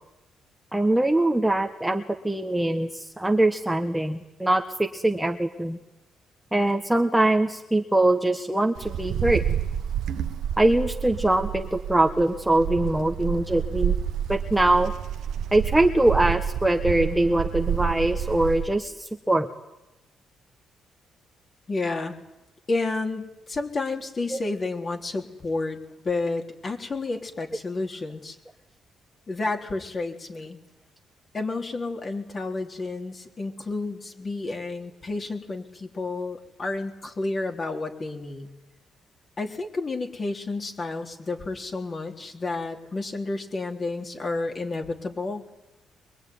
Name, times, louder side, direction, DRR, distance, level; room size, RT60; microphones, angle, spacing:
voice 1, 0.7-5.8 6.5-9.4 10.6-13.9 14.3-14.9 15.5-19.5 24.3-24.4, right 1 dB, 5° right, 4 dB, 1.3 m, -23 dB
Wind, 8.8-18.8, right 9 dB, 75° right, 1.2 m, -29 dB
voice 2, 21.7-22.2 22.7-28.4 29.3-30.6 31.3-38.5 39.4-45.5, left 3 dB, 35° left, 3 dB, 3.6 m, -31 dB
23.5 x 22.5 x 9.6 m, 0.97 s
cardioid pair, 90°, 0 cm